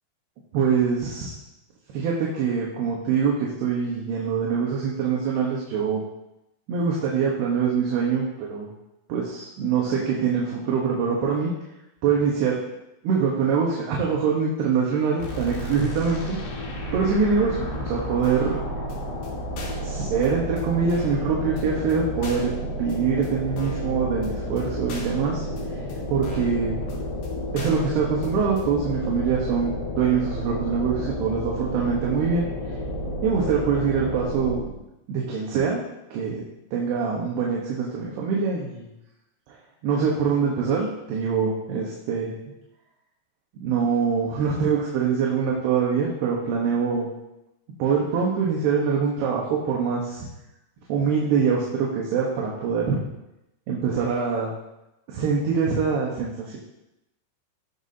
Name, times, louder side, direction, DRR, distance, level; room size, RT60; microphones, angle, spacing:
voice 1, 0.5-1.3 1.9-6.0 6.7-8.7 9.1-11.5 12.0-12.6 13.0-16.4 16.9-18.6 19.8-22.5 22.8-25.5 26.1-26.8 27.5-32.5 33.2-34.6 35.1-35.8 36.1-36.4 36.7-38.9 39.8-42.3 43.6-47.1 47.8-50.3 50.9-53.0 53.7-54.5 55.1-56.6, right 6 dB, 75° right, -3 dB, 3.2 m, -24 dB
sound 1, 15.2-34.8, equal, 85° left, 4.3 m, -31 dB
sound 2, 18.2-18.6 18.9-19.0 19.2-19.3 19.6-19.9 20.2-20.3 20.6-20.7 20.9-21.2 21.6-21.7 21.9-22.0 22.2-22.6 22.9-23.0 23.2-23.3 23.6-23.9 24.2-24.3 24.6-24.7 24.9-25.2 25.6-25.7 25.9-26.0 26.2-26.6 26.9-27.0 27.2-27.3 27.6-27.9 28.2-28.3 28.6-28.7, left 3 dB, 60° left, 3.2 m, -41 dB
16.5 x 7.1 x 2.8 m, 0.91 s
omnidirectional pair, 5.0 m